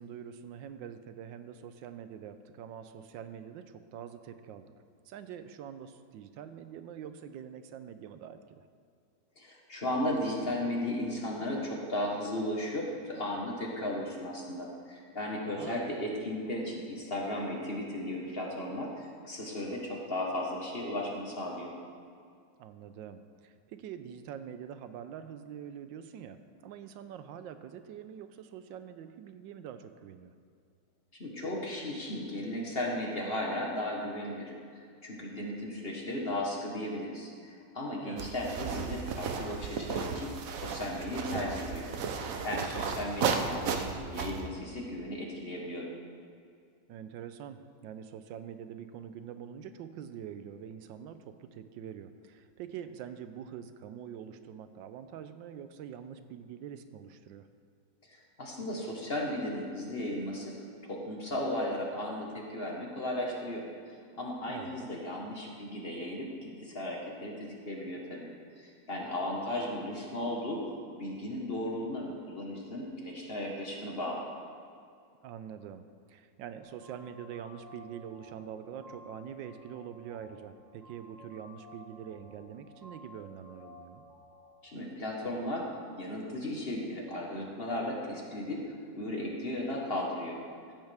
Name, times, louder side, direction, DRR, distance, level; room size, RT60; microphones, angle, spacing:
voice 1, 0.0-4.7 5.0-8.6 15.5-15.9 22.6-30.3 38.0-38.3 46.9-57.5 64.5-64.9 75.2-84.0, right 8 dB, 85° right, 10 dB, 1.3 m, -45 dB
voice 2, 9.4-21.7 31.2-41.9 42.1-45.9 58.1-60.5 60.8-68.3 68.6-70.6 71.0-74.2 84.6-85.7 86.0-88.6 89.0-90.4, left 1 dB, 35° left, -2 dB, 1.5 m, -35 dB
sound 1, 38.2-44.5, right 5 dB, 60° right, 1.0 m, -34 dB
sound 2, 76.6-84.6, left 1 dB, 15° right, 1.6 m, -54 dB
14.5 x 8.9 x 3.5 m, 2.4 s
omnidirectional pair, 2.0 m